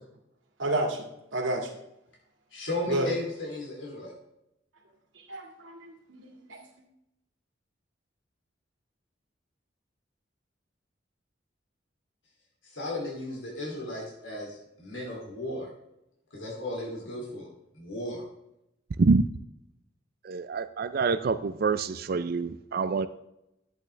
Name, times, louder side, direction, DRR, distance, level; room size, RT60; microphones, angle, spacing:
voice 1, 0.6-1.0 1.3-1.7 2.9-3.1 5.3-6.6, right 1 dB, 85° right, 2 dB, 2.0 m, -30 dB
voice 2, 2.5-4.1 12.7-15.7 16.3-17.5 17.7-18.2, left 1 dB, 85° left, -3 dB, 2.9 m, -35 dB
voice 3, 20.2-23.1, right 4 dB, 50° right, 11 dB, 0.4 m, -26 dB
11.0 x 8.3 x 3.3 m, 0.84 s
head